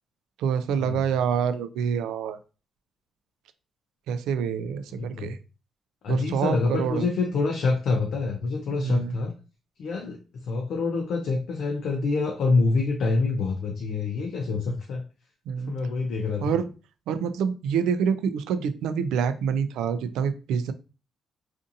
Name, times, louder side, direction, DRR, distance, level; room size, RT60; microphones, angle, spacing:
voice 1, 0.4-2.4 4.1-5.4 6.1-7.0 8.7-9.1 15.5-15.7 16.4-16.7 17.1-20.7, right 7 dB, 90° right, 11 dB, 0.3 m, -26 dB
voice 2, 4.9-5.3 6.0-9.3 9.8-15.0 15.7-16.5, left 3 dB, 70° left, 2 dB, 0.6 m, -26 dB
2.5 x 2.5 x 2.7 m, 0.33 s
cardioid pair, 90°, 0 cm